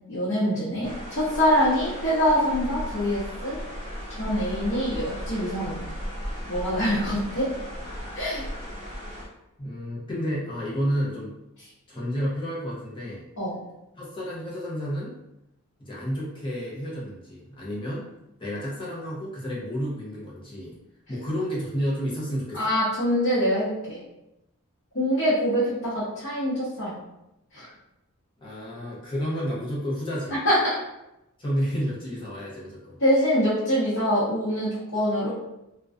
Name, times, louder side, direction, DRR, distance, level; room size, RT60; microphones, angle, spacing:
voice 1, 0.1-3.6 4.1-5.8 6.5-7.5 8.1-8.4 13.4-13.6 22.5-24.0 24.9-27.0 27.5-27.6 30.4-30.8 33.0-35.3, equal, 65° left, -11 dB, 0.9 m, -24 dB
sound 1, 0.8-9.2, equal, 35° right, 0.7 m, -36 dB
voice 2, 9.6-11.3 11.9-13.2 14.0-15.1 15.8-18.1 18.4-20.8 21.1-22.6 28.4-30.4 31.4-33.0, equal, 25° left, -6 dB, 0.7 m, -30 dB
2.5 x 2.2 x 2.3 m, 0.90 s
head